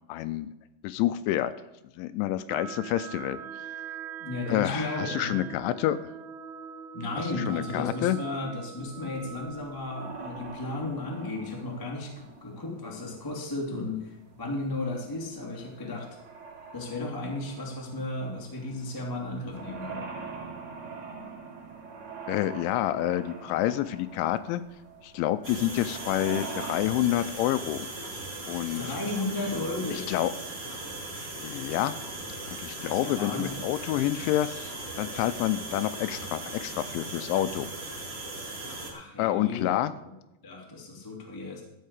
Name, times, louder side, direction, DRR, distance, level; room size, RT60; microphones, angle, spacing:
voice 1, 0.1-0.5 0.8-1.5 2.0-3.4 4.5-6.0 7.2-8.2 22.3-24.6 25.0-27.9 28.5-29.0 29.9-30.3 31.4-32.0 32.5-37.7 39.2-39.9, left 13 dB, 85° left, 13 dB, 2.8 m, -28 dB
sound 1, 2.5-12.0, right 7 dB, 80° right, 2.2 m, -42 dB
voice 2, 4.2-5.4 6.9-16.1 16.7-20.1 28.7-30.1 32.8-33.6 38.9-39.7 40.4-41.6, left 2 dB, 20° left, -1 dB, 0.6 m, -34 dB
sound 2, 8.8-26.8, right 4 dB, 55° right, 3.9 m, -44 dB
sound 3, 25.4-38.9, right 2 dB, 35° right, 1.4 m, -38 dB
14.0 x 5.6 x 8.1 m, 0.94 s
omnidirectional pair, 5.5 m